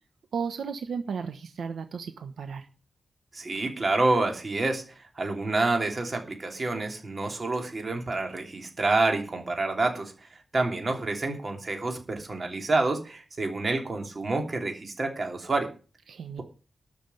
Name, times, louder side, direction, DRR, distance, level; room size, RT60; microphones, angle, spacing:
voice 1, 0.3-2.7 16.1-16.4, right 6 dB, 75° right, 8 dB, 1.1 m, -34 dB
voice 2, 3.3-10.1 10.5-15.7, right 2 dB, 30° right, 3 dB, 3.0 m, -28 dB
12.5 x 6.1 x 8.3 m, 0.35 s
wide cardioid pair, 170°, 0 cm